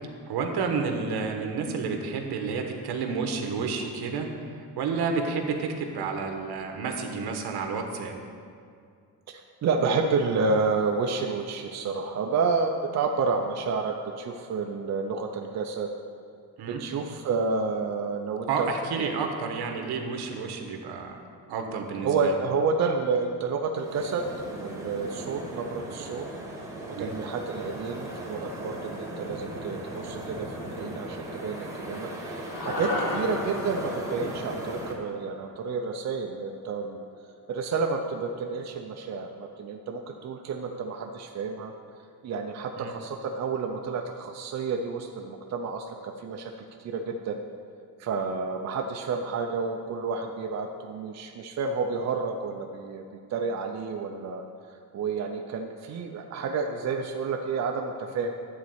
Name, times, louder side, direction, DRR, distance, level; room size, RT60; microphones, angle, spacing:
voice 1, 0.3-8.2 16.6-16.8 18.5-21.2 21.5-22.3 26.9-27.1 42.8-42.9, right 5 dB, 70° right, 4 dB, 1.3 m, -30 dB
voice 2, 9.3-15.9 16.7-18.7 19.0-19.3 22.0-26.3 26.9-37.0 37.5-41.7 42.2-47.4 48.0-54.4 54.7-58.4, right 4 dB, 45° right, 3 dB, 0.6 m, -30 dB
sound 1, 23.8-34.9, right 1 dB, 10° right, 1.3 m, -38 dB
sound 2, 32.5-37.0, left 1 dB, 85° left, 1.9 m, -35 dB
11.0 x 4.2 x 7.9 m, 2.3 s
cardioid pair, 160°, 40 cm